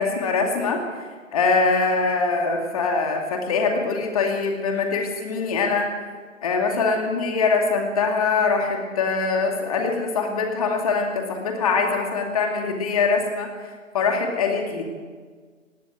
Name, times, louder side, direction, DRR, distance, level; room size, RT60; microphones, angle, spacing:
voice 1, 0.0-5.9 6.4-13.5 13.9-14.8, left 4 dB, 30° left, 3 dB, 2.4 m, -23 dB
19.5 x 18.0 x 7.6 m, 1.5 s
figure-of-eight pair, 145°, 39 cm